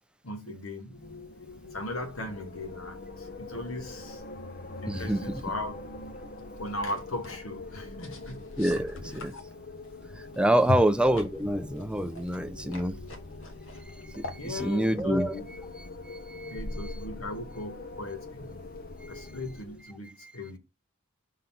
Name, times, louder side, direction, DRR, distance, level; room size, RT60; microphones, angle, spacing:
voice 1, 0.2-1.0 1.7-4.2 4.8-6.0 6.6-8.4 9.1-9.4 10.7-10.8 14.4-15.5 16.5-18.7 19.1-20.6, left 1 dB, 90° left, 1.6 m, -37 dB
Wind, 0.9-19.9, left 2 dB, 45° left, 0.7 m, -43 dB
voice 2, 4.9-5.4 8.6-9.3 10.2-13.0 13.9-15.4 15.8-17.0 19.0-19.3 20.2-20.3, right 1 dB, 5° right, 0.4 m, -28 dB
sound 1, 5.3-16.5, left 2 dB, 70° left, 1.4 m, -48 dB
5.4 x 3.9 x 5.6 m
head